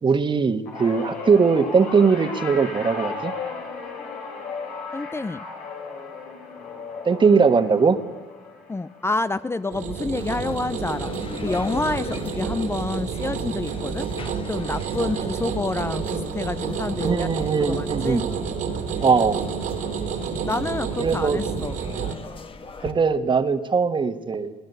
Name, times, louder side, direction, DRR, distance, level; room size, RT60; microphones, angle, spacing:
voice 1, 0.0-3.3 7.0-8.0 17.0-18.2 19.0-19.4 21.0-21.4 22.8-24.5, right 5 dB, 35° right, 10 dB, 1.5 m, -20 dB
sound 1, 0.7-11.1 11.4-11.8 13.0-13.1, left 4 dB, 80° left, 4.8 m, -36 dB
voice 2, 4.9-5.4 8.7-11.1 11.4-14.1 14.5-17.3 17.7-18.2 20.5-21.8, left 2 dB, 20° left, 13 dB, 0.6 m, -28 dB
sound 2, 9.7-22.1, right 6 dB, 80° right, 2.8 m, -29 dB
sound 3, 10.1-22.9, left 4 dB, 40° left, 1.7 m, -41 dB
21.0 x 16.5 x 8.1 m, 1.3 s
supercardioid pair, 75°, 14 cm